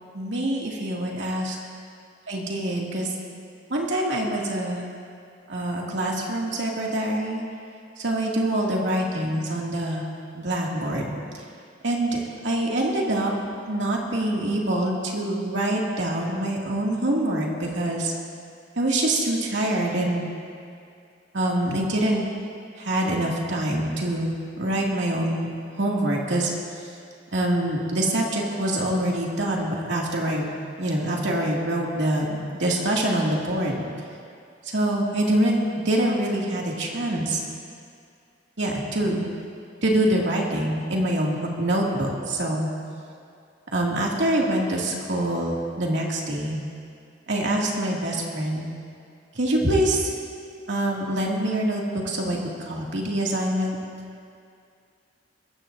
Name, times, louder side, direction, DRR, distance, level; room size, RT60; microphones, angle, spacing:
voice 1, 0.1-1.6 2.3-3.1 3.7-4.8 5.5-7.4 8.0-10.0 10.3-11.2 11.8-13.3 13.7-18.1 18.8-20.3 21.3-22.2 22.8-26.5 27.3-30.4 30.8-33.8 34.6-37.4 38.6-39.3 39.8-42.7 43.7-46.6 47.3-48.6 49.4-50.1 50.7-53.8, right 1 dB, 85° right, -2 dB, 2.4 m, -25 dB
21.5 x 15.5 x 2.7 m, 2.4 s
head